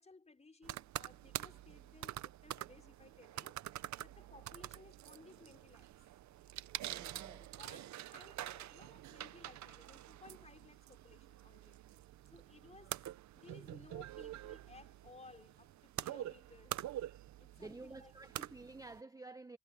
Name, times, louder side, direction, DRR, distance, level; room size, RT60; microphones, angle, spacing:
voice 1, 0.0-3.6 4.0-5.9 7.6-11.8 12.2-13.0 13.3-16.8 17.4-18.1, left 3 dB, 20° left, 5.0 m, -60 dB
sound 1, 0.6-19.0, right 13 dB, 70° right, 0.8 m, -47 dB
voice 2, 6.9-7.5 17.6-19.6, right 3 dB, 10° right, 0.9 m, -51 dB
cardioid pair, 90°, 30 cm